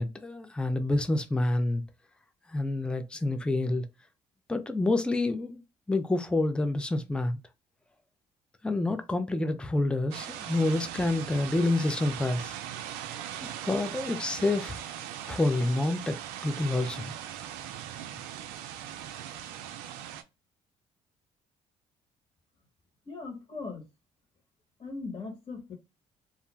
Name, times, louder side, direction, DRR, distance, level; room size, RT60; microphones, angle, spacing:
voice 1, 0.0-1.8 2.5-3.9 4.5-5.6 5.9-7.4 8.6-12.5 13.4-14.8 15.3-16.2 16.4-17.1, left 2 dB, 5° left, 0.4 m, -28 dB
sound 1, 10.1-20.2, right 10 dB, 80° right, 0.4 m, -40 dB
voice 2, 23.1-23.8 24.8-25.7, left 4 dB, 40° left, 1.2 m, -39 dB
2.5 x 2.1 x 3.0 m
hypercardioid pair, 60°, 15 cm